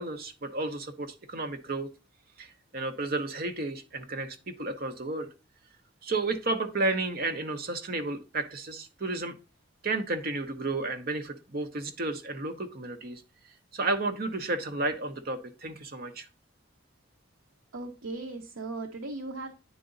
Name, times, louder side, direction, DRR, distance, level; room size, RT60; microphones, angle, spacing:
voice 1, 0.0-1.9 2.4-5.3 6.0-9.3 9.8-13.2 13.7-16.3, right 2 dB, 45° right, 8 dB, 0.8 m, -32 dB
voice 2, 17.7-19.5, right 2 dB, 80° right, 4 dB, 0.7 m, -37 dB
9.1 x 3.9 x 3.8 m, 0.31 s
head